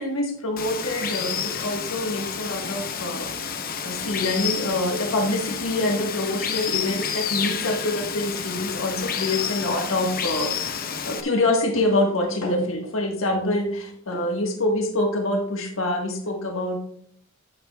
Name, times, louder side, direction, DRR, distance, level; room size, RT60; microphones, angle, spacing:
voice 1, 0.0-3.3 3.8-16.8, left 1 dB, 80° left, 1 dB, 1.5 m, -26 dB
Water, 0.6-11.2, left 7 dB, 45° left, 0.8 m, -30 dB
11.0 x 8.9 x 2.4 m, 0.65 s
head